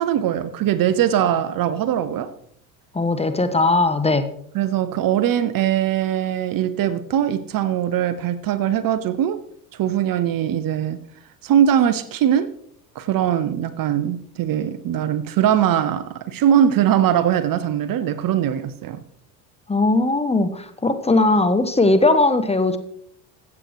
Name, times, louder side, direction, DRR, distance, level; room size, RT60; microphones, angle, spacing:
voice 1, 0.0-2.3 4.5-9.4 9.7-11.0 11.4-12.5 12.9-19.0, right 10 dB, 45° right, 0.9 m, -21 dB
voice 2, 2.9-4.3 19.7-22.8, left 2 dB, 15° left, 1.0 m, -19 dB
14.5 x 8.1 x 3.1 m
hypercardioid pair, 75°, 47 cm